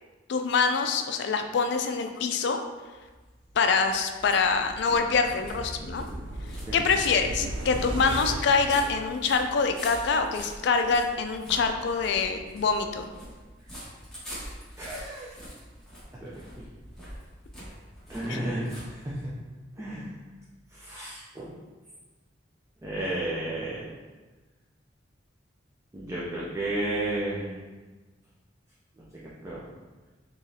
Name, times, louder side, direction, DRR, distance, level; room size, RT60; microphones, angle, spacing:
voice 1, 0.3-2.6 3.6-6.0 6.7-13.1 18.3-18.4, left 5 dB, 65° left, 6 dB, 0.3 m, -25 dB
sound 1, 2.9-19.5, equal, 5° left, 1.2 m, -45 dB
sound 2, 4.4-9.7 10.0-10.1, right 1 dB, 75° right, 0.4 m, -37 dB
voice 2, 14.8-15.3 16.2-16.3 18.1-19.2 19.8-20.1 20.7-21.5 22.8-23.9 25.9-27.6 29.0-29.1 29.4-29.6, right 1 dB, 15° right, -7 dB, 0.5 m, -32 dB
3.9 x 3.0 x 2.7 m, 1.3 s
head